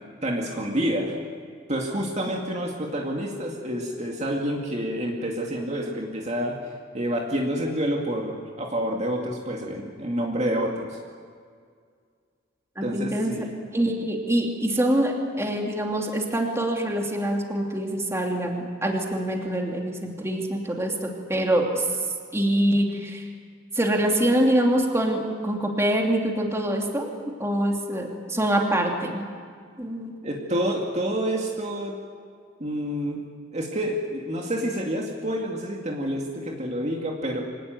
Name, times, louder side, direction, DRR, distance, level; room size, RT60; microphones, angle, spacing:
voice 1, 0.2-1.1 1.7-6.6 6.9-11.0 12.8-13.5 30.2-32.0 32.6-33.2 33.5-37.4, equal, 35° right, 0 dB, 2.3 m, -28 dB
voice 2, 12.8-13.3 13.7-21.9 22.3-23.3 23.7-27.1 27.4-29.3 29.8-30.1, right 1 dB, 15° right, 1 dB, 2.8 m, -25 dB
25.0 x 18.5 x 9.5 m, 2.1 s
head